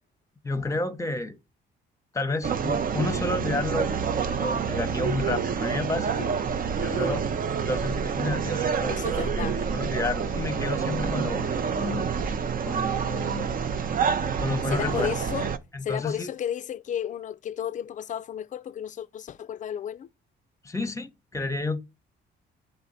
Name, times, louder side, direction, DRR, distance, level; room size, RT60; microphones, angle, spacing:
voice 1, 0.4-1.3 2.1-4.0 4.4-6.1 6.8-7.2 7.6-12.1 12.6-13.5 14.4-15.1 15.7-16.3 20.6-21.8, left 2 dB, 15° left, 0.8 m, -31 dB
sound 1, 2.4-15.6, right 6 dB, 45° right, 0.6 m, -28 dB
voice 2, 8.9-9.6 14.7-15.5 15.8-20.1, left 9 dB, 40° left, 0.4 m, -33 dB
7.8 x 3.4 x 4.0 m
cardioid pair, 90°, 20 cm